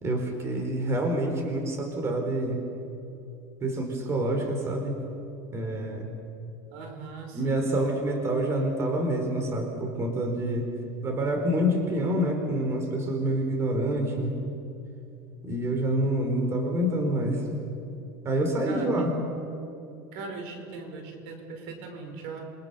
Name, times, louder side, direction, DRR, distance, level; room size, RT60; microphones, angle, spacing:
voice 1, 0.0-2.6 3.6-5.0 5.5-6.1 7.3-10.7 11.0-14.4 15.4-17.4 18.2-19.1, right 1 dB, 25° right, 4 dB, 4.5 m, -27 dB
voice 2, 6.7-7.8 18.7-19.0 20.1-22.4, right 4 dB, 70° right, 4 dB, 5.4 m, -39 dB
29.0 x 25.0 x 7.1 m, 2.7 s
supercardioid pair, 140°, 10 cm